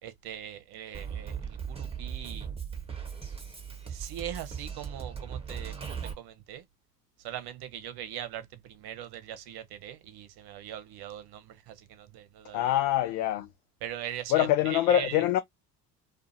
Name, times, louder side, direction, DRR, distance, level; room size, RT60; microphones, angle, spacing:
voice 1, 0.0-2.5 3.8-6.6 7.2-12.7 13.8-15.3, right 10 dB, 50° right, 0.9 m, -41 dB
Drum kit, 0.9-6.1, right 7 dB, 10° right, 1.2 m, -38 dB
voice 2, 12.5-13.5 14.3-15.4, left 12 dB, 75° left, 0.6 m, -24 dB
2.5 x 2.4 x 2.7 m
hypercardioid pair, 70°, 50 cm